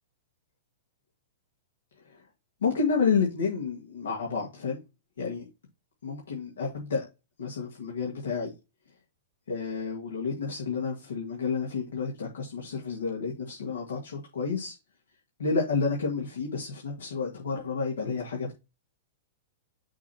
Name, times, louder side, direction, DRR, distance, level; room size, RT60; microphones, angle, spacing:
voice 1, 2.6-4.8 5.2-5.5 6.0-7.1 7.4-8.5 9.5-14.7 15.4-18.6, left 5 dB, 85° left, 1.7 m, -30 dB
6.0 x 2.9 x 5.5 m
hypercardioid pair, 125°, 0 cm